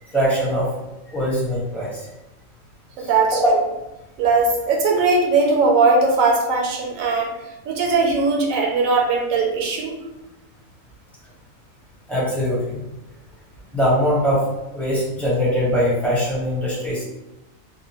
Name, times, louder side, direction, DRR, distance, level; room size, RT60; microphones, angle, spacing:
voice 1, 0.0-0.7 1.1-2.1 3.0-3.5 12.1-12.8 13.7-14.4 14.7-17.0, equal, ahead, -9 dB, 0.7 m, -22 dB
voice 2, 3.0-3.4 4.2-7.3 7.7-10.0, right 3 dB, 75° right, 0 dB, 1.0 m, -19 dB
2.6 x 2.2 x 2.8 m, 0.96 s
omnidirectional pair, 1.4 m